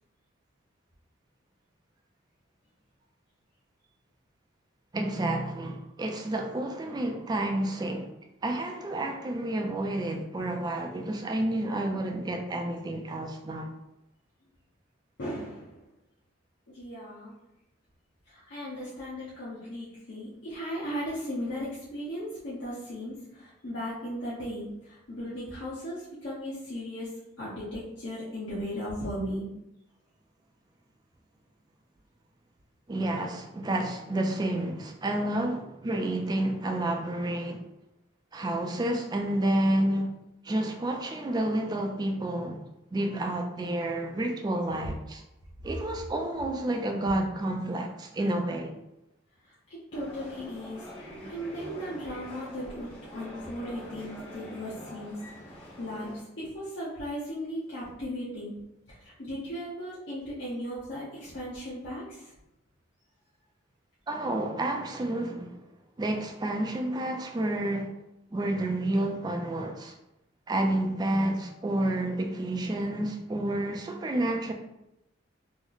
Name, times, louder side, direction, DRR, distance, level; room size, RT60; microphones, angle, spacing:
voice 1, 4.9-8.1 8.4-13.7 32.9-37.6 38.3-40.1 40.4-42.6 42.9-45.2 45.6-48.7 64.1-65.6 66.0-67.9 68.3-69.9 70.5-74.5, right 1 dB, 20° right, 0.3 m, -30 dB
voice 2, 15.2-15.7 16.7-17.3 18.3-27.1 27.4-29.5 49.7-50.8 51.2-55.2 55.5-58.6 58.9-62.3, equal, 60° left, 0.8 m, -37 dB
sound 1, 49.9-56.2, equal, 30° left, 0.8 m, -44 dB
3.0 x 2.1 x 3.8 m
head